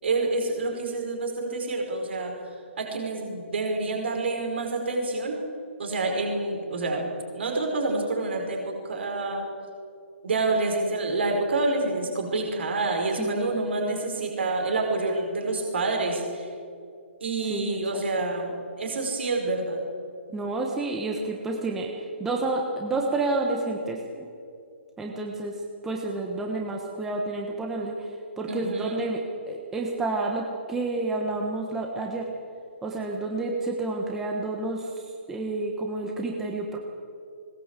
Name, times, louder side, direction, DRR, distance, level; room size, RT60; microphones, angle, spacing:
voice 1, 0.0-2.4 2.8-5.4 5.8-7.0 7.3-9.5 10.2-16.5 17.2-19.8 28.5-29.0, right 2 dB, 60° right, 2 dB, 5.1 m, -28 dB
voice 2, 13.2-13.6 17.5-17.8 20.3-21.9 22.2-24.3 25.0-28.1 28.4-32.3 32.8-35.0 35.3-36.8, right 2 dB, 5° right, 0 dB, 1.2 m, -29 dB
20.5 x 20.0 x 8.2 m, 2.4 s
hypercardioid pair, 175°, 7 cm